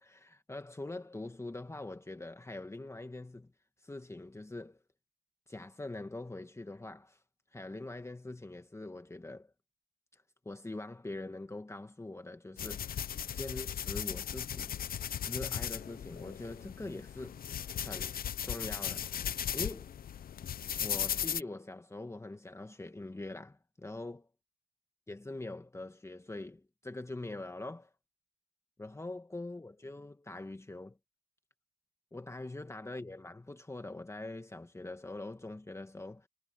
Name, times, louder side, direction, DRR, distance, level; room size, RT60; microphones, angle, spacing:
voice 1, 0.0-3.5 3.8-4.8 5.5-7.2 7.5-9.5 10.1-13.0 13.3-14.7 15.3-17.5 17.8-18.2 18.4-19.1 19.5-19.9 20.8-24.3 25.1-27.9 28.8-31.0 32.1-36.3, left 2 dB, 15° left, 1.7 m, -43 dB
sound 1, 12.6-21.4, left 9 dB, 45° left, 0.7 m, -37 dB
cardioid pair, 90°, 20 cm